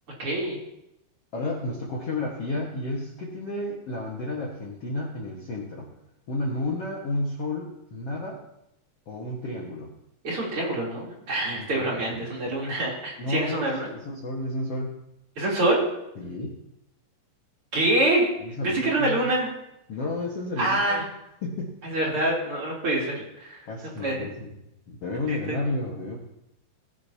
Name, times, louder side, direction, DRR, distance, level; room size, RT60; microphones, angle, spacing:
voice 1, 0.2-0.6 10.2-13.9 15.4-15.8 17.7-18.3 18.6-19.5 20.6-21.0 21.8-23.6 24.0-24.2 25.3-25.6, right 1 dB, 35° right, -4 dB, 3.6 m, -25 dB
voice 2, 1.3-5.9 6.3-8.4 9.1-9.9 11.5-12.6 13.2-14.9 16.1-16.5 18.4-19.3 19.9-21.1 21.4-21.8 23.6-24.6 24.9-26.2, left 2 dB, 80° left, -3 dB, 1.3 m, -32 dB
21.5 x 10.5 x 2.8 m, 0.85 s
omnidirectional pair, 5.2 m